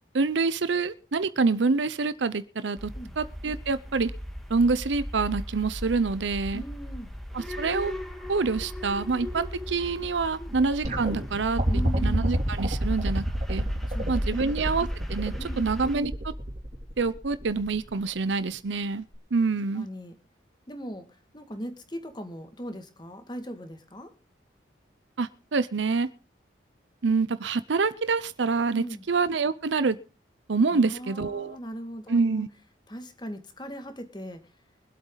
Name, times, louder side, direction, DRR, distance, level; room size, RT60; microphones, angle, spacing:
voice 1, 0.1-2.9 3.2-4.1 4.5-6.6 7.3-7.9 8.3-11.6 12.0-13.2 13.5-13.6 14.1-16.1 17.0-19.0 19.3-19.9 25.2-26.1 27.0-30.0 30.5-31.6 32.1-32.5, right 4 dB, 75° right, 15 dB, 0.6 m, -26 dB
sound 1, 2.8-16.0, equal, ahead, 1.7 m, -37 dB
voice 2, 6.5-7.1 10.4-10.6 11.7-12.3 13.9-14.4 15.4-15.7 19.7-20.1 20.7-24.1 28.8-29.0 30.7-32.4 32.9-34.4, equal, 25° left, 7 dB, 1.9 m, -39 dB
sound 2, 10.8-18.0 19.1-19.2, right 1 dB, 40° right, 2.9 m, -29 dB
24.0 x 8.2 x 3.9 m, 0.33 s
head